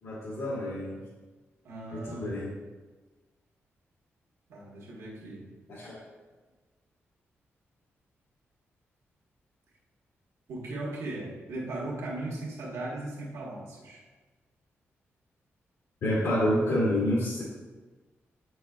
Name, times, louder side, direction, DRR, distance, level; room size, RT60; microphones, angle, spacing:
voice 1, 0.0-1.0 1.9-2.5 5.7-6.0 16.0-17.4, left 1 dB, 75° left, -9 dB, 1.8 m, -28 dB
voice 2, 1.6-2.3 4.5-5.5 10.5-14.0, right 2 dB, 90° right, -4 dB, 1.5 m, -37 dB
8.5 x 6.0 x 2.4 m, 1.3 s
wide cardioid pair, 160°, 5 cm